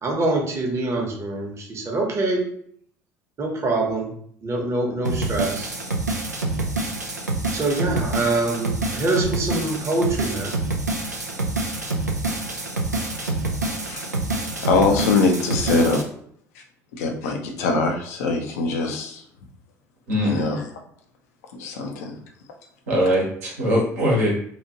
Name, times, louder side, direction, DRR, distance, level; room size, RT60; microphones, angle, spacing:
voice 1, 0.0-2.4 3.4-4.1 4.4-5.7 7.5-10.5, right 2 dB, 35° right, 0 dB, 0.9 m, -24 dB
sound 1, 5.0-16.0, right 2 dB, 85° right, 0.4 m, -27 dB
voice 2, 14.6-16.0 17.0-19.2 20.2-20.6 21.6-22.2, left 3 dB, 65° left, 3 dB, 0.6 m, -22 dB
voice 3, 20.1-20.5 22.9-24.3, equal, 70° right, -4 dB, 1.0 m, -21 dB
2.9 x 2.4 x 2.8 m, 0.64 s
figure-of-eight pair, 60°, 9 cm